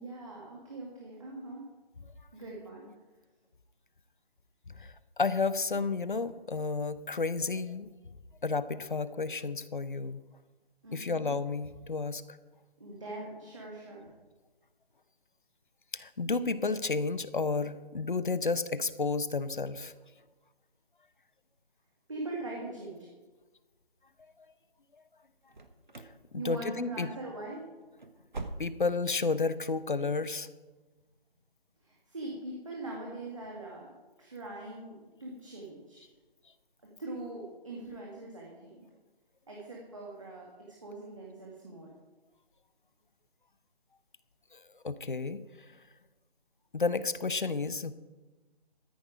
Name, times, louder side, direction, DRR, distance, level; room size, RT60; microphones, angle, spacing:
voice 1, 0.0-1.6 2.3-2.9 10.8-11.3 12.8-14.1 22.1-23.0 26.4-27.7 31.8-33.9 34.2-34.9 35.2-36.0 37.0-38.7 39.5-40.5 40.8-41.9, right 2 dB, 30° right, -3 dB, 2.1 m, -42 dB
voice 2, 4.8-7.9 8.4-10.2 10.9-12.2 15.9-19.9 26.3-27.1 28.6-30.5 44.8-45.4 46.7-47.9, left 4 dB, 55° left, 14 dB, 0.8 m, -31 dB
sound 1, 25.5-26.2 26.5-26.9 27.2-27.4 27.8-29.1 29.4-29.5 30.0-30.1, right 3 dB, 50° right, 1.1 m, -43 dB
13.5 x 10.0 x 5.0 m, 1.2 s
figure-of-eight pair, 180°, 31 cm